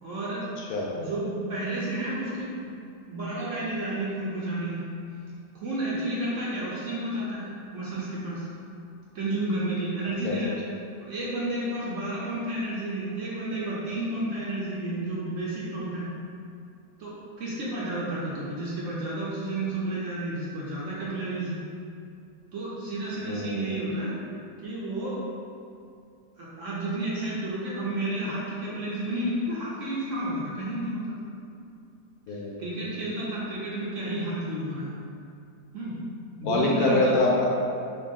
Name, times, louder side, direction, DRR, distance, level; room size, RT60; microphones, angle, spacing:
voice 1, 0.0-0.4 0.9-2.6 3.1-4.9 5.5-8.5 9.1-10.6 11.0-16.1 17.0-21.6 22.5-24.1 24.6-25.2 26.4-31.3 32.3-34.9 35.7-36.0 36.4-37.2, right 1 dB, 55° right, -7 dB, 1.0 m, -31 dB
voice 2, 0.6-0.9 10.2-10.3 23.3-23.8 32.3-32.6 36.4-37.5, left 2 dB, 70° left, -3 dB, 1.0 m, -25 dB
6.0 x 2.4 x 3.5 m, 2.5 s
omnidirectional pair, 1.8 m